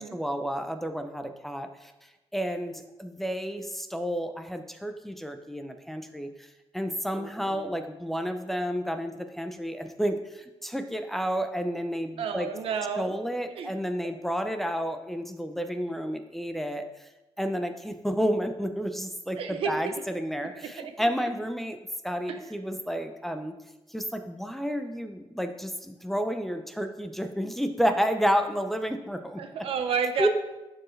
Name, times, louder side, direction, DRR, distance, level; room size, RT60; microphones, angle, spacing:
voice 1, 0.0-1.9 2.3-6.5 6.7-12.5 13.0-17.1 17.4-21.8 22.0-23.6 23.9-29.4 30.2-30.3, equal, ahead, 6 dB, 0.5 m, -31 dB
voice 2, 7.1-7.6 12.2-13.2 13.5-13.7 19.4-19.9 20.6-20.9 22.3-22.4 29.4-30.3, right 6 dB, 85° right, 7 dB, 0.8 m, -31 dB
11.5 x 4.6 x 3.2 m, 1.0 s
cardioid pair, 115°, 9 cm